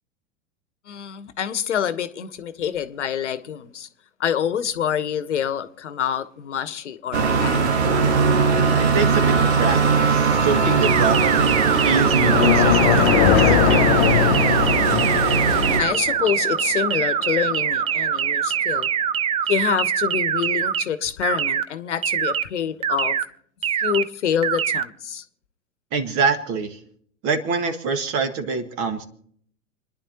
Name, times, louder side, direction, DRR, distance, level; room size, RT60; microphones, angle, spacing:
voice 1, 0.9-3.9 4.2-7.8 15.4-18.9 19.5-23.2 23.8-25.2, left 8 dB, 65° left, 1.1 m, -26 dB
sound 1, 7.1-15.8, right 4 dB, 60° right, 1.8 m, -20 dB
voice 2, 8.8-13.9 25.9-26.8 27.2-29.0, right 4 dB, 35° right, 1.8 m, -25 dB
sound 2, 10.8-20.8 21.2-21.6 22.0-22.4 22.8-23.2 23.6-24.0 24.4-24.8, right 8 dB, 15° right, 0.5 m, -23 dB
sound 3, 12.1-17.2, left 15 dB, 40° left, 0.5 m, -21 dB
29.0 x 10.5 x 2.9 m
figure-of-eight pair, 90°, 38 cm